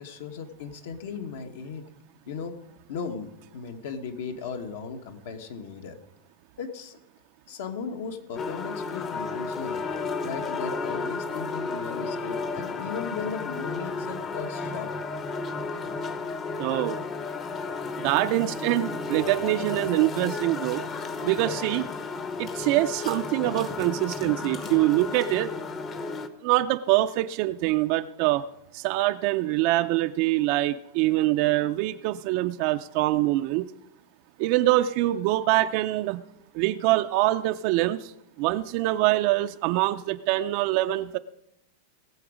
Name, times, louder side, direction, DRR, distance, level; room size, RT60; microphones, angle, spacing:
voice 1, 0.0-1.8 2.3-2.6 2.9-6.0 6.6-7.0 7.5-9.8 10.2-14.9, left 6 dB, 65° left, 6 dB, 1.3 m, -36 dB
sound 1, 8.4-26.3, left 4 dB, 20° left, 0.8 m, -33 dB
voice 2, 16.6-17.0 18.0-20.9 21.2-21.8 22.4-25.5 26.4-28.5 28.7-33.7 34.4-36.2 36.5-38.1 38.4-41.2, right 16 dB, 45° right, 9 dB, 0.4 m, -24 dB
19.0 x 7.0 x 5.0 m, 0.83 s
supercardioid pair, 160°, 0 cm